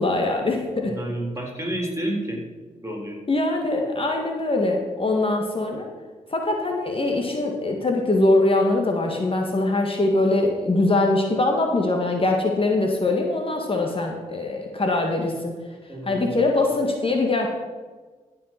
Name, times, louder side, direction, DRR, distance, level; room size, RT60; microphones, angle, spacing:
voice 1, 0.0-0.9 3.3-5.9 6.3-15.5 16.0-17.5, left 2 dB, 35° left, 2 dB, 1.9 m, -22 dB
voice 2, 0.8-2.4 2.8-3.2 15.9-16.3, right 1 dB, 20° right, 0 dB, 3.9 m, -30 dB
14.5 x 5.5 x 6.0 m, 1.4 s
supercardioid pair, 45°, 15 cm